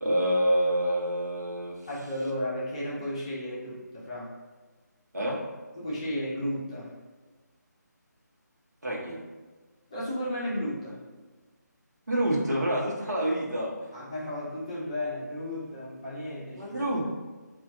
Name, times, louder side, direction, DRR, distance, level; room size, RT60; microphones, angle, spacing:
voice 1, 0.0-1.7 5.1-5.4 8.8-9.2 12.1-13.9 16.6-17.0, right 1 dB, 65° right, -4 dB, 1.1 m, -27 dB
voice 2, 1.9-4.3 5.7-7.0 9.9-11.0 13.9-16.7, left 1 dB, 20° left, -7 dB, 0.6 m, -34 dB
5.6 x 2.4 x 2.7 m, 1.3 s
figure-of-eight pair, 155°, 10 cm